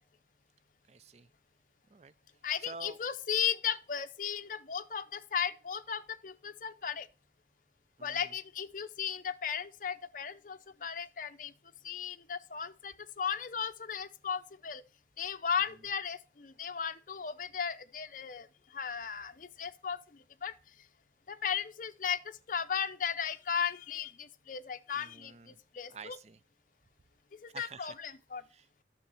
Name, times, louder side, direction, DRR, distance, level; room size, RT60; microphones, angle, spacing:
voice 1, 0.9-1.3 1.9-2.1 2.6-3.0 8.0-8.3 24.9-25.6 25.9-26.4 27.5-28.0 28.5-28.8, right 4 dB, 35° right, 0.4 m, -49 dB
voice 2, 2.4-7.1 8.0-11.5 11.8-14.8 15.2-18.5 18.7-20.6 21.3-26.2 27.4-28.4, left 7 dB, 45° left, 0.6 m, -36 dB
10.0 x 6.9 x 4.0 m
head